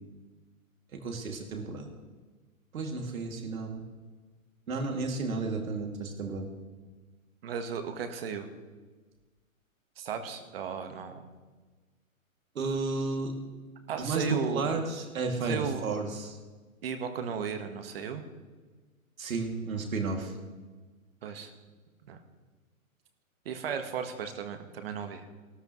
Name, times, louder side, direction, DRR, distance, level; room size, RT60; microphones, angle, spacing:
voice 1, 0.9-1.9 2.7-3.8 4.7-6.5 12.5-13.3 13.9-16.4 19.2-20.3, right 3 dB, 75° right, 2 dB, 2.6 m, -32 dB
voice 2, 7.4-8.5 10.0-11.2 13.9-14.8 15.4-15.9 16.8-18.2 21.2-21.5 22.1-22.2 23.4-25.3, right 6 dB, 45° right, 7 dB, 1.5 m, -35 dB
17.0 x 13.0 x 3.1 m, 1.3 s
hypercardioid pair, 160°, 42 cm